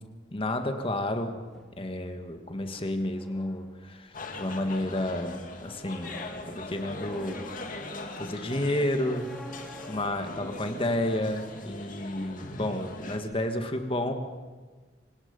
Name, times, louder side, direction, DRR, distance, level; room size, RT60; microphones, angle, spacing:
voice 1, 0.3-1.4 1.8-6.2 6.5-7.4 8.2-9.3 9.9-14.1, left 1 dB, 30° left, 6 dB, 1.8 m, -31 dB
sound 1, 1.4-11.4, equal, ahead, 1.4 m, -51 dB
sound 2, 4.1-13.2, left 2 dB, 50° left, 2.2 m, -41 dB
26.5 x 18.5 x 5.4 m, 1.3 s
head